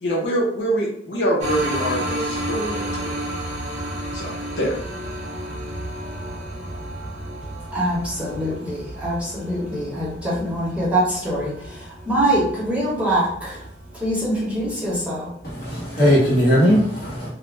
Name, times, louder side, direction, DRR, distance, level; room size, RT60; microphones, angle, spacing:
voice 1, 0.0-3.1 4.1-4.7, right 1 dB, 85° left, -3 dB, 0.8 m, -25 dB
sound 1, 1.4-16.3, right 1 dB, 40° right, 0.6 m, -32 dB
voice 2, 7.7-13.6 14.0-15.3, right 1 dB, 5° right, -7 dB, 0.8 m, -24 dB
voice 3, 15.4-17.3, equal, 55° left, -6 dB, 1.1 m, -18 dB
2.3 x 2.1 x 3.1 m, 0.67 s
head